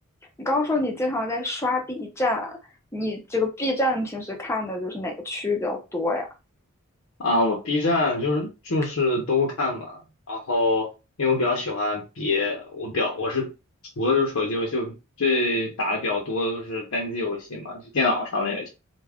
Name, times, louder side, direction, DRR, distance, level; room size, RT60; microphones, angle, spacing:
voice 1, 0.4-2.6 2.9-6.3, left 2 dB, 10° left, 0.5 m, -26 dB
voice 2, 7.2-10.0 10.3-10.9 11.2-13.5 14.0-18.7, left 2 dB, 70° left, 0.6 m, -25 dB
2.3 x 2.1 x 3.4 m
head